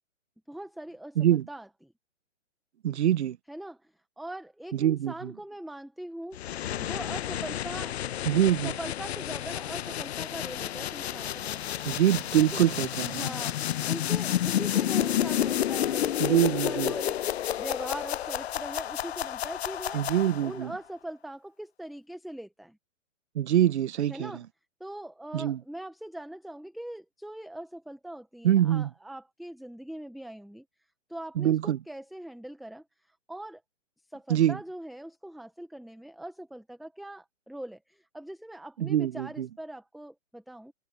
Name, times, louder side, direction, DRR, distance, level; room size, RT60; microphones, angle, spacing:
voice 1, 0.5-1.9 3.5-6.4 6.8-8.0 8.6-11.8 12.4-12.6 13.1-22.8 24.1-24.4 24.8-30.7 31.1-33.6 34.1-40.7, right 1 dB, ahead, 0.5 m, -41 dB
voice 2, 1.2-1.5 2.8-3.4 4.7-5.3 8.3-8.7 11.8-13.3 16.2-16.9 19.9-20.7 23.3-24.4 25.3-25.6 28.4-28.9 31.4-31.8 34.3-34.6 38.8-39.5, right 11 dB, 60° right, 0.9 m, -24 dB
sound 1, 6.3-20.6, left 11 dB, 60° left, 0.8 m, -30 dB
hypercardioid pair, 140°, 37 cm